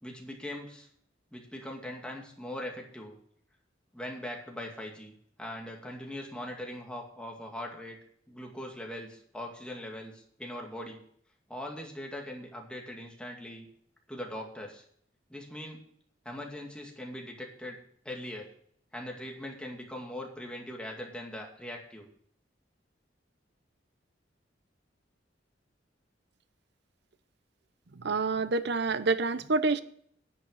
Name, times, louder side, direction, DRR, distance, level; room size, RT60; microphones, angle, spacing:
voice 1, 0.0-0.9 1.3-3.2 3.9-5.1 5.4-8.0 8.3-11.0 11.5-13.7 14.1-14.8 15.3-15.8 16.2-17.8 18.0-18.5 18.9-22.1, left 1 dB, 5° left, 0 dB, 2.3 m, -41 dB
voice 2, 28.0-29.8, right 3 dB, 65° right, 14 dB, 0.8 m, -27 dB
10.5 x 8.3 x 6.3 m, 0.62 s
head